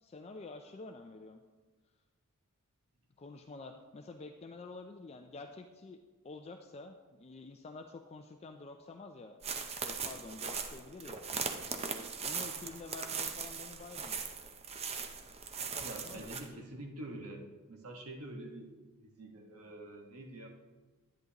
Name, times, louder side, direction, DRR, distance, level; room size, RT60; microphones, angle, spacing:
voice 1, 0.0-1.4 3.2-9.4 9.8-11.2 11.7-14.2 15.6-16.7, left 3 dB, 30° left, 6 dB, 0.4 m, -49 dB
sound 1, 9.4-16.5, right 6 dB, 30° right, 0.6 m, -39 dB
voice 2, 15.8-18.7 19.0-20.5, right 1 dB, 75° right, 2 dB, 1.3 m, -46 dB
10.5 x 9.3 x 2.9 m, 1.3 s
head